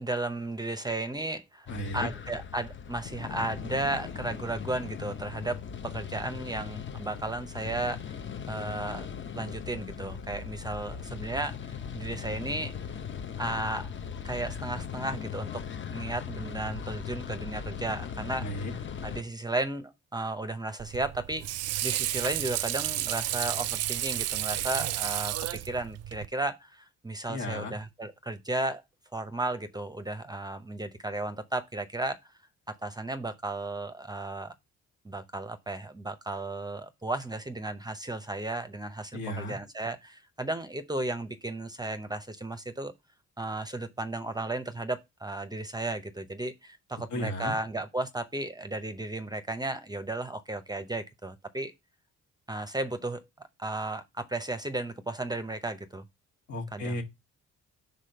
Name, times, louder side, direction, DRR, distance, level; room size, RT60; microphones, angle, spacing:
voice 1, 0.0-8.2 8.5-9.1 9.3-12.8 13.4-13.9 14.2-15.6 15.9-18.7 19.0-28.8 29.1-32.2 32.8-34.5 35.0-42.9 43.4-51.7 52.5-53.2 53.6-56.0 56.7-57.0, right 2 dB, 15° right, 0.6 m, -34 dB
voice 2, 1.7-2.1 18.4-18.7 27.3-27.7 39.1-39.5 47.1-47.5 56.5-57.0, equal, 65° left, 1.7 m, -34 dB
sound 1, 1.7-19.2, left 7 dB, 40° left, 0.7 m, -39 dB
Water / Sink (filling or washing), 20.8-26.3, right 13 dB, 55° right, 0.4 m, -32 dB
5.0 x 4.1 x 5.6 m
cardioid pair, 90°, 30 cm